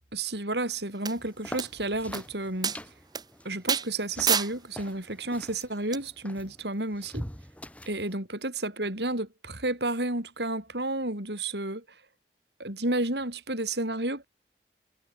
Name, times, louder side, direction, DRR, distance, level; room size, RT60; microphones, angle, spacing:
voice 1, 0.1-2.8 3.4-7.2 7.9-11.8 12.6-14.2, right 2 dB, 75° right, 6.9 m, -31 dB
sound 1, 1.1-1.2 1.6-1.7 2.1-2.2 2.6-2.8 3.1-3.2 3.7-3.9 4.3-4.5 5.9-6.0, right 7 dB, 25° right, 1.2 m, -26 dB
sound 2, 1.2-8.1, equal, 10° left, 5.1 m, -44 dB
head